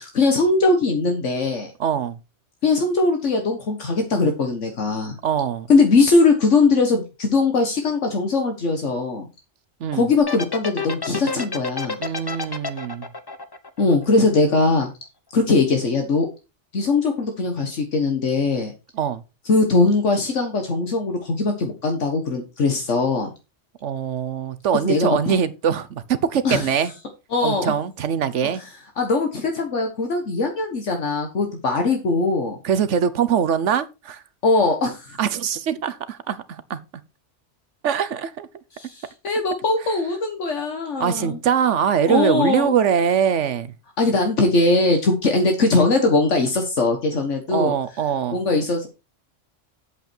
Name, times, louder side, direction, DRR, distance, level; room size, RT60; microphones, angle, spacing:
voice 1, 0.0-1.7 2.6-5.2 5.7-9.2 9.9-12.0 13.8-14.9 15.3-16.3 16.7-18.7 19.5-23.3 24.8-25.2 26.4-26.6 27.3-27.7 29.0-32.6 34.4-35.2 38.8-41.4 42.1-42.7 44.0-47.7 48.3-48.9, left 3 dB, 80° left, 1.7 m, -20 dB
voice 2, 1.8-2.2 5.2-5.7 9.8-10.1 12.0-13.1 18.9-19.2 23.8-26.9 27.4-28.6 32.6-34.2 35.2-36.8 37.8-38.5 41.0-43.7 47.5-48.4, right 8 dB, 75° right, 1.2 m, -22 dB
sound 1, 10.2-14.5, left 4 dB, 20° left, 0.8 m, -29 dB
8.3 x 8.2 x 4.4 m
omnidirectional pair, 1.2 m